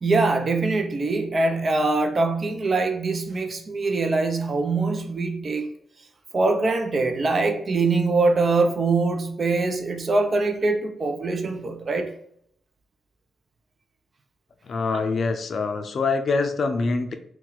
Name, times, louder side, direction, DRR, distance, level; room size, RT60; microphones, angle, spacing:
voice 1, 0.0-5.7 6.3-12.1 14.9-15.0, right 3 dB, 50° right, 0.6 m, -23 dB
voice 2, 14.6-17.1, left 4 dB, 60° left, 0.4 m, -24 dB
2.7 x 2.3 x 3.8 m
hypercardioid pair, 45°, 0 cm